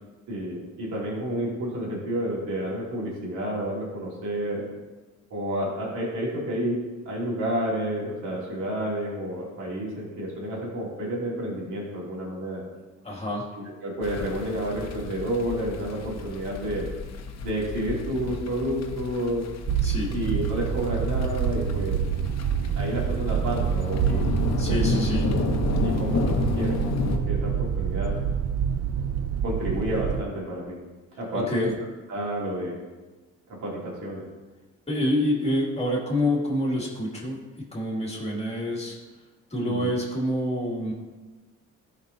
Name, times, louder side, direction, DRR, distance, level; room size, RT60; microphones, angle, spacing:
voice 1, 0.3-4.6 5.3-6.8 7.0-12.6 13.6-16.9 17.4-19.4 20.1-22.0 22.8-24.3 24.7-25.4 25.8-28.1 29.4-30.8 31.2-31.7 32.1-32.8 33.5-34.2 39.6-39.9, right 1 dB, 75° right, -5 dB, 2.7 m, -30 dB
voice 2, 13.0-13.5 19.8-20.1 24.6-25.3 31.3-31.7 34.9-37.4 37.7-39.0 39.5-40.9, left 1 dB, 20° left, -2 dB, 2.3 m, -27 dB
sound 1, 14.0-27.2, left 4 dB, 60° left, 0.9 m, -31 dB
sound 2, 19.7-30.2, right 8 dB, 55° right, 0.6 m, -27 dB
13.0 x 5.3 x 2.7 m, 1.2 s
cardioid pair, 90°, 30 cm